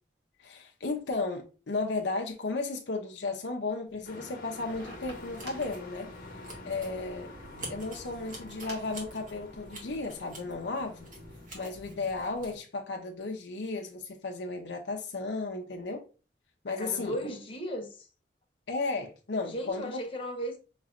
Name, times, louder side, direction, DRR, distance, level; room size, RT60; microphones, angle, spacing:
voice 1, 0.4-6.1 6.6-7.3 7.7-11.1 11.5-16.0 16.6-17.2 18.7-19.9, left 3 dB, 75° left, 0.6 m, -34 dB
sound 1, 3.9-9.0, right 1 dB, 80° right, 1.9 m, -52 dB
Truck, 4.0-11.5, left 2 dB, 55° left, 1.1 m, -48 dB
sound 2, 4.6-12.6, right 1 dB, 50° right, 1.6 m, -48 dB
voice 2, 16.8-18.1 19.4-20.6, equal, 30° left, 1.0 m, -36 dB
5.8 x 3.0 x 2.5 m
head